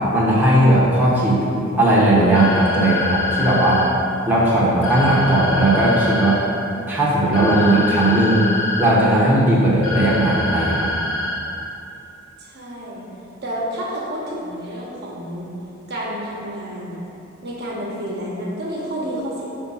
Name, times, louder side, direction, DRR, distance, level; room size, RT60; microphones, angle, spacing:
voice 1, 0.1-3.8 4.3-6.4 6.9-8.5 8.8-10.9, right 1 dB, 10° right, -8 dB, 0.9 m, -17 dB
sound 1, 2.3-3.9 4.8-6.4 7.3-8.9 9.8-11.4, left 2 dB, 90° left, 1.2 m, -25 dB
voice 2, 12.4-13.1 13.4-15.5 15.9-17.1 17.4-19.5, equal, 55° right, -4 dB, 1.1 m, -29 dB
4.9 x 3.6 x 5.6 m, 2.7 s
head